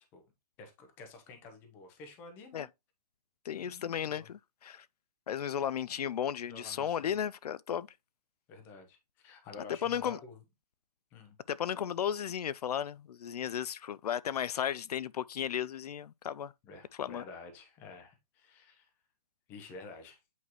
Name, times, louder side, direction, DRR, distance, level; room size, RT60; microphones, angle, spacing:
voice 1, 0.6-2.7 3.5-4.3 6.5-7.2 8.5-10.4 11.1-11.4 16.6-18.9 19.5-20.2, left 3 dB, 10° left, 0.8 m, -50 dB
voice 2, 3.4-4.9 5.3-7.9 9.8-10.2 11.5-16.5 17.0-17.2, left 9 dB, 80° left, 0.4 m, -34 dB
8.4 x 4.5 x 3.0 m
hypercardioid pair, 175°, 20 cm